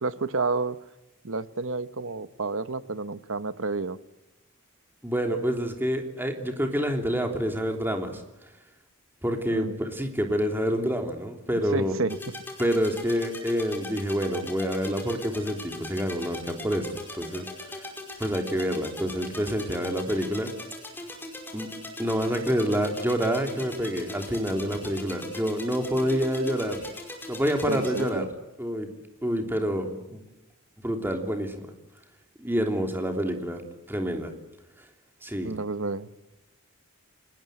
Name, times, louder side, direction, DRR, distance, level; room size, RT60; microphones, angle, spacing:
voice 1, 0.0-0.8 1.2-4.0 9.5-9.8 11.7-12.2 27.7-28.3 35.4-36.3, right 3 dB, 65° right, 13 dB, 1.0 m, -30 dB
voice 2, 5.0-8.2 9.2-11.9 12.6-17.4 17.7-17.9 18.2-20.5 21.5-21.7 22.0-26.8 27.3-28.3 28.6-28.9 29.2-30.2 30.8-31.7 32.4-33.6 33.9-34.3 35.2-35.5, equal, 10° right, 4 dB, 3.2 m, -27 dB
sound 1, 12.1-28.1, left 1 dB, 10° left, 5.1 m, -40 dB
29.5 x 20.0 x 7.9 m, 0.97 s
head